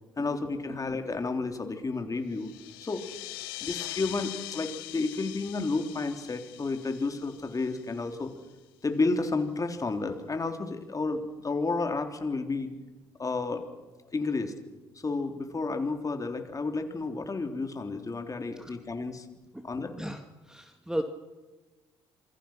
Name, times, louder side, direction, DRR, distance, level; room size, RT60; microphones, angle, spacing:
voice 1, 0.2-2.5 2.8-3.1 3.6-8.3 8.8-12.7 13.2-13.7 14.1-14.5 14.9-19.2 19.6-19.9, left 3 dB, 30° left, 6 dB, 3.5 m, -31 dB
sound 1, 2.3-8.5, left 19 dB, 80° left, 0.9 m, -42 dB
voice 2, 20.0-21.0, right 1 dB, 5° right, 6 dB, 2.1 m, -35 dB
27.0 x 20.5 x 5.9 m, 1.2 s
hypercardioid pair, 55°, 12 cm